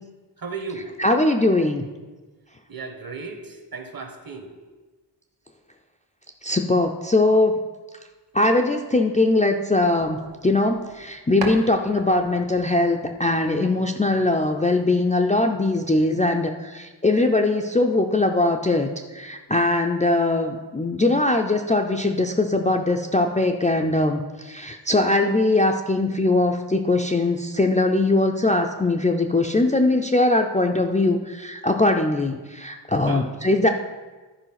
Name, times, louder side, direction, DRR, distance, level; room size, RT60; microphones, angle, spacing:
voice 1, 0.4-0.9 2.7-4.6 33.1-33.2, right 4 dB, 55° right, 5 dB, 1.2 m, -35 dB
voice 2, 1.0-1.8 6.4-7.5 8.3-10.2 10.4-33.7, left 2 dB, 20° left, 3 dB, 0.4 m, -21 dB
sound 1, 9.8-11.1 11.4-14.0, right 3 dB, 85° right, 1.3 m, -39 dB
11.5 x 4.7 x 5.7 m, 1.3 s
wide cardioid pair, 155°, 43 cm